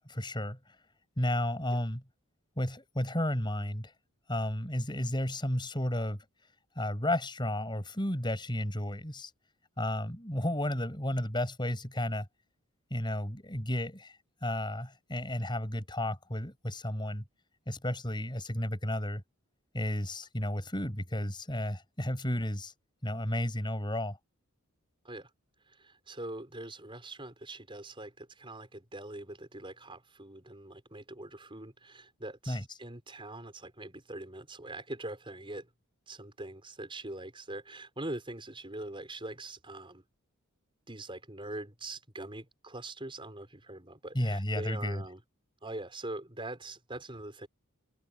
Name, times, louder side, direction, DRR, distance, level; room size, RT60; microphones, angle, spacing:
voice 1, 0.1-0.8 1.2-2.0 2.6-3.9 4.3-6.2 6.8-9.3 9.8-12.3 12.9-17.2 17.7-19.2 19.7-22.7 23.0-24.2 32.5-32.6 44.1-45.0, left 1 dB, 20° left, 7.4 m, -33 dB
voice 2, 25.7-35.7 36.1-40.0 40.9-45.2 45.6-47.5, right 2 dB, 25° right, 5.5 m, -43 dB
head